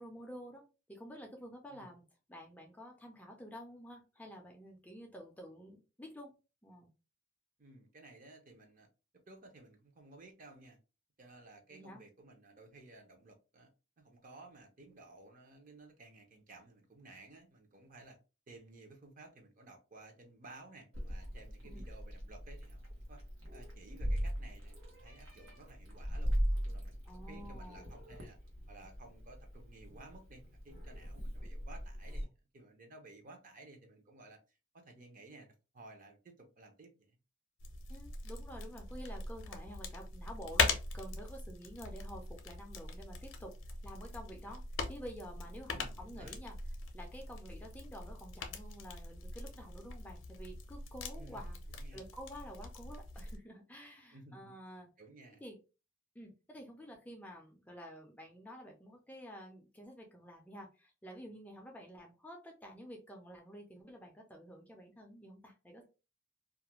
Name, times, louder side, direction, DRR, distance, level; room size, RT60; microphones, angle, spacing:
voice 1, 0.0-2.0 2.3-6.3 6.6-6.9 11.7-12.0 21.6-21.9 27.1-27.9 37.9-46.5 46.9-51.6 51.9-54.9 55.4-55.6 56.1-65.9, equal, 10° left, 0.4 m, -50 dB
voice 2, 7.6-8.9 9.3-10.8 11.2-13.7 14.0-18.2 18.5-23.2 23.5-26.4 26.6-28.4 28.7-34.4 34.7-37.2 45.7-46.4 51.2-51.5 51.7-52.1 54.1-54.5 55.0-55.4, right 2 dB, 40° right, 0.6 m, -56 dB
Meow, 20.9-32.2, equal, 80° right, 1.0 m, -39 dB
sound 1, 37.6-53.4, left 4 dB, 70° left, 0.5 m, -41 dB
2.4 x 2.1 x 2.9 m
head